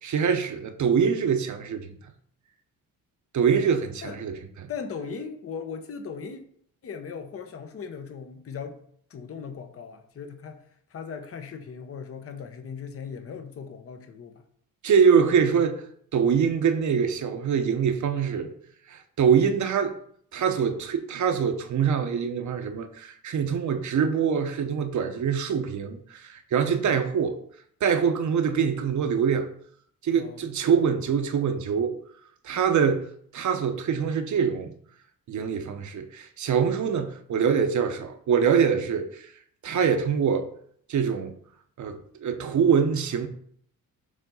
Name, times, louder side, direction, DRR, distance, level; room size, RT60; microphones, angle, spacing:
voice 1, 0.0-1.9 3.3-4.7 14.8-15.8 16.1-18.5 18.9-19.9 20.3-27.4 27.8-29.5 30.0-32.0 32.4-34.7 35.3-39.3 39.6-40.5 40.9-41.3 41.8-43.3, right 7 dB, 55° right, 0.9 m, -24 dB
voice 2, 4.7-6.4 6.8-8.8 9.1-10.6 10.9-14.3 26.8-26.9 30.1-30.4, left 6 dB, 40° left, 0.9 m, -38 dB
7.2 x 3.4 x 5.4 m
cardioid pair, 125°, 35 cm